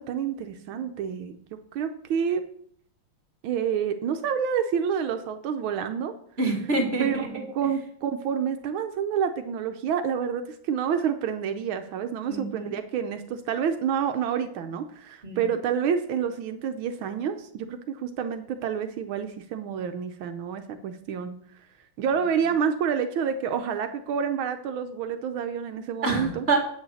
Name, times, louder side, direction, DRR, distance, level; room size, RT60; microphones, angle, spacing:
voice 1, 0.0-1.3 1.7-2.4 3.4-6.1 7.0-21.4 22.0-26.5, right 7 dB, 80° right, 7 dB, 1.5 m, -28 dB
voice 2, 6.4-7.3 12.3-12.7 15.2-15.4 26.0-26.6, right 3 dB, 30° right, 2 dB, 2.3 m, -26 dB
8.8 x 6.5 x 7.0 m, 0.63 s
omnidirectional pair, 2.2 m